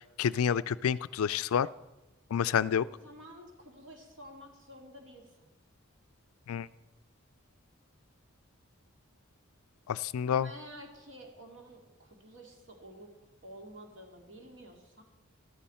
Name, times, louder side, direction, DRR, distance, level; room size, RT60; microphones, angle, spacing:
voice 1, 0.2-1.7 2.3-2.9 6.5-6.7 9.9-10.5, left 8 dB, 85° left, 17 dB, 0.4 m, -28 dB
voice 2, 2.9-5.5 10.3-13.1 13.4-15.0, equal, 60° right, 1 dB, 2.4 m, -50 dB
14.0 x 13.0 x 4.4 m, 1.1 s
head